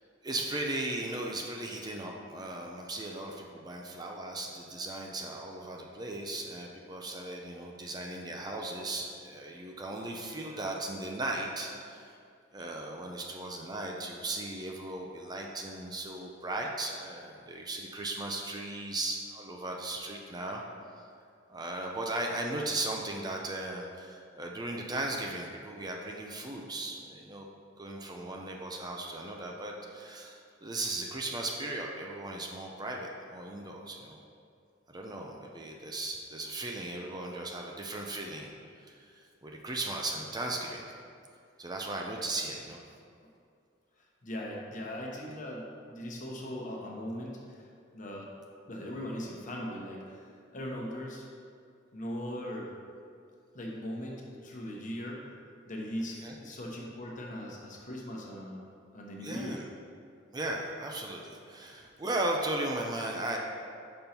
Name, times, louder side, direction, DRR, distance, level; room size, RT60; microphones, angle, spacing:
voice 1, 0.2-12.2 12.5-20.6 21.5-27.5 27.8-34.2 34.9-40.8 41.6-42.8 56.2-56.3 59.2-59.6 60.3-63.4, right 2 dB, 20° right, 0 dB, 0.5 m, -37 dB
voice 2, 10.2-10.6 44.0-48.3 48.7-51.3 51.9-52.7 53.5-55.3 55.6-59.6, equal, 45° left, -2 dB, 1.0 m, -40 dB
5.4 x 5.4 x 4.4 m, 2.3 s
head